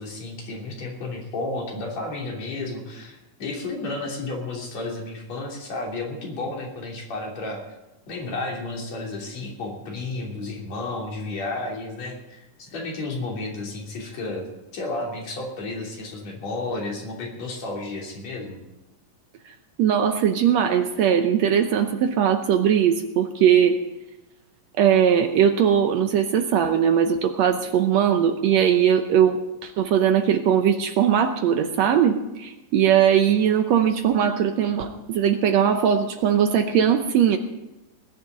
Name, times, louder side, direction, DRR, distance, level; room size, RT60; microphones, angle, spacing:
voice 1, 0.0-7.6 8.1-14.5 14.7-18.6, left 2 dB, 55° left, -1 dB, 4.2 m, -32 dB
voice 2, 19.8-23.7 24.8-37.4, right 8 dB, 70° right, 6 dB, 1.8 m, -20 dB
20.0 x 6.8 x 8.8 m, 0.99 s
omnidirectional pair, 3.8 m